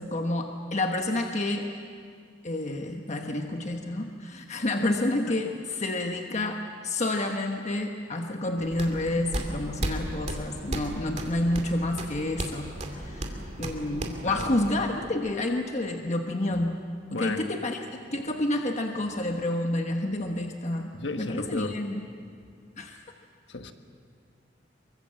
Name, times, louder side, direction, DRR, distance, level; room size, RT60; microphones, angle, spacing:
voice 1, 0.0-1.7 2.4-16.8 17.1-22.0 22.8-23.0, left 1 dB, 35° left, 3 dB, 1.2 m, -29 dB
sound 1, 8.6-14.8, right 1 dB, 35° right, 2.5 m, -35 dB
voice 2, 17.1-17.4 20.9-21.8 23.5-23.7, left 3 dB, 65° left, 7 dB, 1.5 m, -33 dB
25.0 x 24.0 x 7.6 m, 2.2 s
head